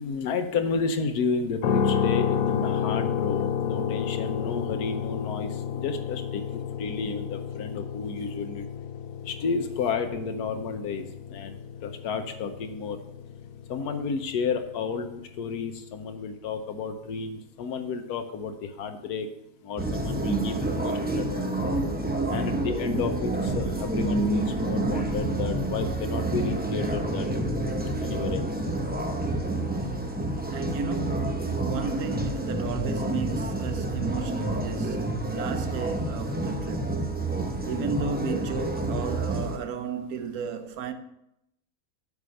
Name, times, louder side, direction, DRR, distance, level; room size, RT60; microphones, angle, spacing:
voice 1, 0.0-8.7 9.3-11.0 11.3-13.0 13.7-19.3 19.6-21.5 22.3-27.3 27.5-27.7 28.0-28.5, left 5 dB, 90° left, 1.3 m, -32 dB
sound 1, 1.6-15.6, left 8 dB, 70° left, 1.1 m, -31 dB
sound 2, 19.8-39.6, right 1 dB, 15° right, 0.4 m, -28 dB
voice 2, 30.5-36.9 37.7-40.9, right 6 dB, 75° right, 1.2 m, -34 dB
8.4 x 5.0 x 6.4 m
omnidirectional pair, 1.6 m